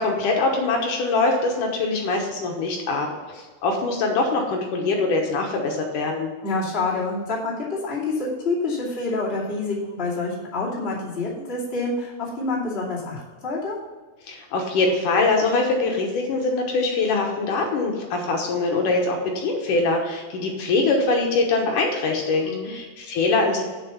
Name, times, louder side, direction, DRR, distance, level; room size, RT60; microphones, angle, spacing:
voice 1, 0.0-6.3 14.3-23.6, left 3 dB, 65° left, 1 dB, 2.2 m, -23 dB
voice 2, 6.4-13.7 22.4-22.7, left 3 dB, 20° left, -5 dB, 1.7 m, -27 dB
7.5 x 7.1 x 5.7 m, 1.4 s
omnidirectional pair, 4.7 m